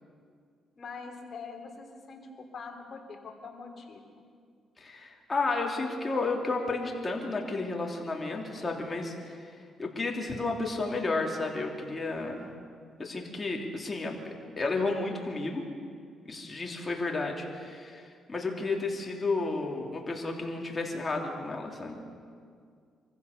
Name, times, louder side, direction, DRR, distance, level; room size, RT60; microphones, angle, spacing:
voice 1, 0.8-4.0, left 4 dB, 45° left, 2 dB, 3.5 m, -44 dB
voice 2, 4.8-9.5 9.8-12.5 13.0-14.2 14.6-15.6 16.2-22.0, left 3 dB, 25° left, 0 dB, 3.3 m, -32 dB
25.0 x 15.5 x 6.9 m, 2.2 s
cardioid pair, 90°, 0 cm